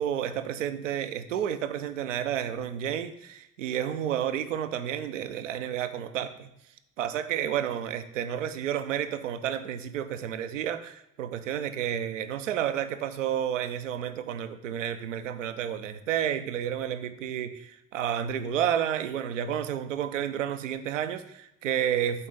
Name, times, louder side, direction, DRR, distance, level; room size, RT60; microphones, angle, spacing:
voice 1, 0.0-6.5 7.0-22.3, right 9 dB, 80° right, 10 dB, 0.5 m, -31 dB
7.8 x 4.2 x 3.9 m, 0.81 s
figure-of-eight pair, 45°, 37 cm